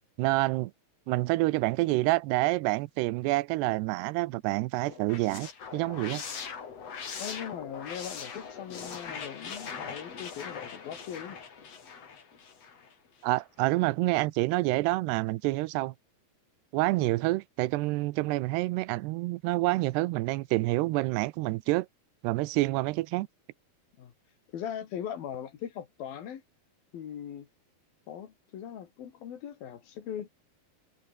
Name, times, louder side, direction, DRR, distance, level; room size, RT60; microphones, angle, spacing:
voice 1, 0.2-0.7 1.1-6.2 13.2-15.9 16.7-21.9 22.2-23.3, right 20 dB, 90° right, 2.9 m, -27 dB
sound 1, 4.9-12.9, left 6 dB, 40° left, 3.8 m, -41 dB
voice 2, 7.2-11.4 16.9-17.1 24.0-24.1 24.5-26.4 26.9-27.5 28.1-30.3, left 9 dB, 65° left, 4.0 m, -40 dB
omnidirectional pair, 4.7 m